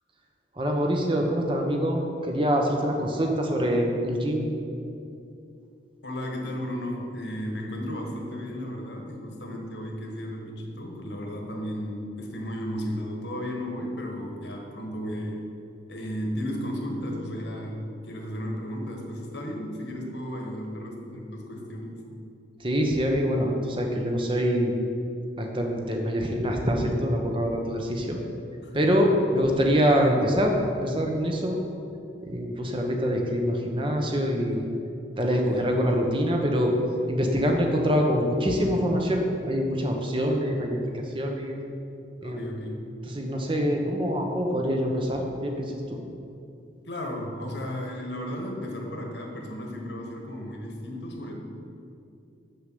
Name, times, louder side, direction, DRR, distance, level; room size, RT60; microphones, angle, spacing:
voice 1, 0.6-4.5 22.6-24.7 25.4-28.2 28.7-30.6 30.8-31.6 32.3-34.6 35.2-36.7 37.1-41.6 42.2-42.5 43.1-46.0, equal, 25° right, 2 dB, 1.0 m, -25 dB
voice 2, 6.0-15.4 15.9-22.1 28.6-28.9 35.3-35.6 42.2-42.9 46.8-51.4, equal, 70° left, 1 dB, 1.5 m, -34 dB
6.8 x 6.6 x 7.7 m, 2.6 s
head